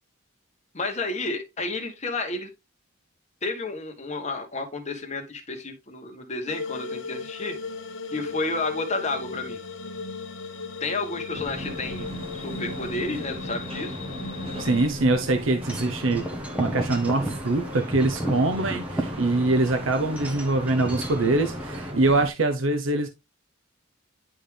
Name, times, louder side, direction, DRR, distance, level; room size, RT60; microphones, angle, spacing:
voice 1, 0.7-2.5 3.4-7.6 8.1-9.6 10.8-12.1 12.4-14.0, left 3 dB, 35° left, 1.4 m, -31 dB
sound 1, 6.5-14.9, left 3 dB, 65° left, 0.9 m, -36 dB
sound 2, 11.3-22.3, left 1 dB, 30° right, 1.1 m, -37 dB
voice 2, 14.6-16.2 16.6-23.1, right 2 dB, 75° right, 0.8 m, -23 dB
Wind chime / Wind, 15.6-21.9, right 1 dB, 5° right, 1.1 m, -34 dB
10.0 x 3.6 x 3.3 m
head